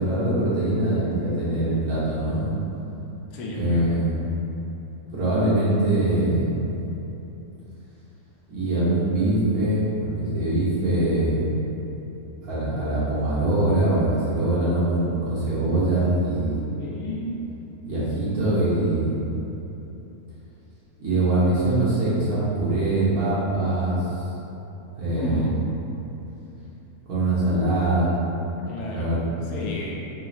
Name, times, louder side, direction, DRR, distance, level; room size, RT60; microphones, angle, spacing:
voice 1, 0.0-2.6 3.5-4.2 5.1-6.6 8.5-11.4 12.4-16.6 17.8-19.2 21.0-24.1 24.9-25.4 27.1-28.1 28.9-29.3, right 1 dB, 70° right, -10 dB, 1.5 m, -23 dB
voice 2, 3.3-3.9 16.8-17.4 25.1-25.6 28.7-29.2 29.5-30.1, left 1 dB, 85° left, -3 dB, 1.1 m, -32 dB
3.5 x 3.1 x 2.4 m, 3.0 s
omnidirectional pair, 1.6 m